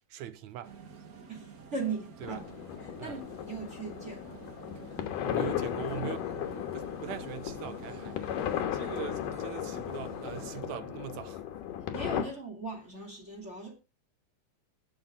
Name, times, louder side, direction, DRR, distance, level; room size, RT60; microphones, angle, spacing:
voice 1, 0.1-0.7 2.2-2.4 3.0-3.2 5.2-8.2 8.7-11.4, right 11 dB, 75° right, 1.8 m, -41 dB
sound 1, 0.6-10.6, right 5 dB, 55° right, 1.0 m, -49 dB
voice 2, 1.3-2.5 2.8-4.5 11.9-13.7, right 4 dB, 20° right, 2.6 m, -39 dB
sound 2, 2.2-12.3, left 10 dB, 75° left, 2.8 m, -36 dB
19.5 x 7.3 x 3.7 m
omnidirectional pair, 3.8 m